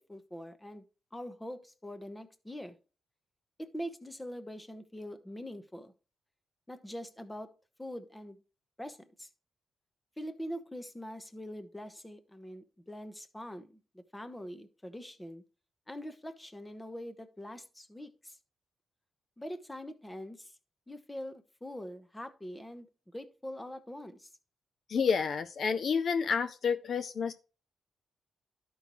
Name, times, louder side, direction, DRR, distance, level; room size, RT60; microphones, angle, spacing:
voice 1, 0.0-2.8 3.6-5.9 6.7-7.5 7.8-8.4 8.8-9.3 10.2-15.4 15.9-18.4 19.4-20.5 20.9-22.9 23.1-24.3, equal, 10° left, 0.9 m, -43 dB
voice 2, 24.9-27.3, left 6 dB, 55° left, 0.4 m, -29 dB
12.0 x 5.3 x 3.0 m
cardioid pair, 110°, 0 cm